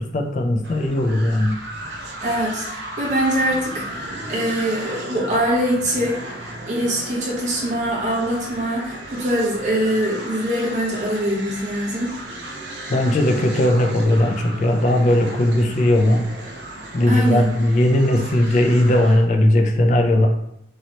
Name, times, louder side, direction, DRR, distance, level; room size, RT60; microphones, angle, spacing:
voice 1, 0.0-1.6 12.9-16.3 16.9-20.3, left 1 dB, 45° left, 3 dB, 0.4 m, -18 dB
sound 1, 0.6-19.3, right 1 dB, 75° right, 0.5 m, -35 dB
voice 2, 2.2-12.1 17.0-17.5, equal, 40° right, -4 dB, 0.8 m, -23 dB
3.1 x 2.8 x 2.8 m, 0.77 s
head